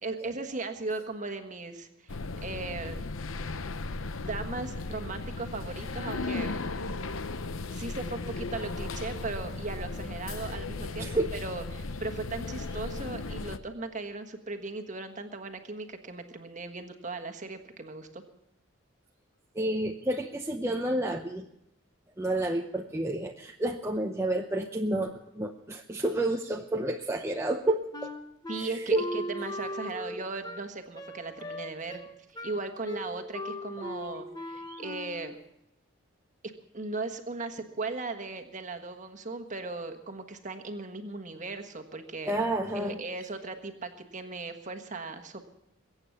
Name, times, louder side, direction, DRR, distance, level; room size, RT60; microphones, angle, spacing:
voice 1, 0.0-3.0 4.2-6.6 7.7-18.2 28.5-32.0 32.3-35.4 36.7-42.3 42.7-45.4, right 3 dB, 35° right, 6 dB, 1.5 m, -37 dB
sound 1, 2.1-13.6, left 3 dB, 75° left, 0.8 m, -36 dB
voice 2, 11.0-11.3 19.5-21.5 22.2-28.1 28.6-29.0 34.6-34.8 42.3-43.0, right 1 dB, 15° right, 2 dB, 0.7 m, -30 dB
Wind instrument woodwind instrument, 27.9-35.4, equal, 20° left, 1.2 m, -39 dB
22.0 x 8.9 x 7.1 m, 0.83 s
head